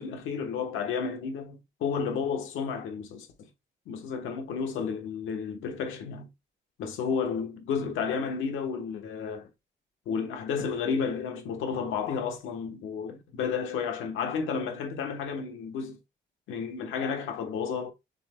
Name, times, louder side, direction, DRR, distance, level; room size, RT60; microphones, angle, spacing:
voice 1, 0.0-3.3 3.9-6.3 6.8-9.5 10.1-16.0 16.5-17.9, left 6 dB, 85° left, 1.2 m, -32 dB
6.7 x 3.3 x 2.2 m
cardioid pair, 90°, 20 cm